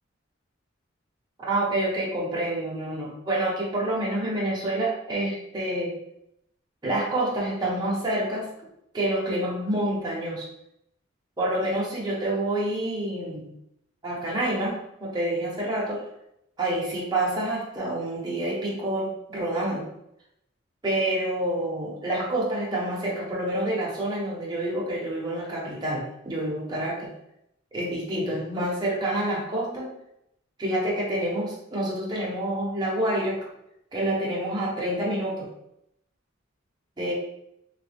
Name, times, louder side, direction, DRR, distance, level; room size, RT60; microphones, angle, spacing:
voice 1, 1.5-6.0 6.8-8.5 8.9-10.5 11.4-13.5 14.0-16.1 16.6-19.9 20.8-27.1 27.7-29.9 30.6-33.5 33.9-35.5 37.0-37.1, right 1 dB, 20° right, -5 dB, 0.6 m, -28 dB
3.0 x 2.2 x 3.2 m, 0.80 s
head